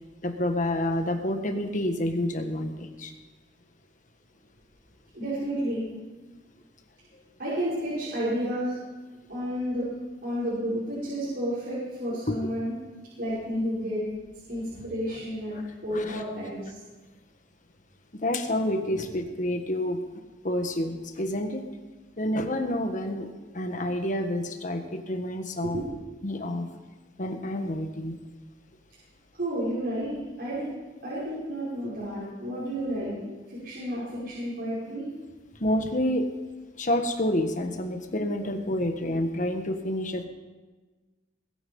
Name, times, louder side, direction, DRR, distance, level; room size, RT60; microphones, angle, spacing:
voice 1, 0.2-3.1 12.3-12.4 15.9-16.2 18.2-20.0 20.4-21.7 22.2-25.8 26.2-26.7 27.2-28.2 35.6-36.3 36.8-40.3, left 1 dB, 45° left, 6 dB, 1.5 m, -28 dB
voice 2, 5.1-5.8 7.4-8.8 9.3-9.9 10.2-12.7 13.2-14.0 14.5-15.6 15.8-16.8 25.6-25.9 29.3-30.7 31.0-33.1 33.6-35.0, equal, 65° right, -10 dB, 5.8 m, -31 dB
21.5 x 10.0 x 5.5 m, 1.3 s
head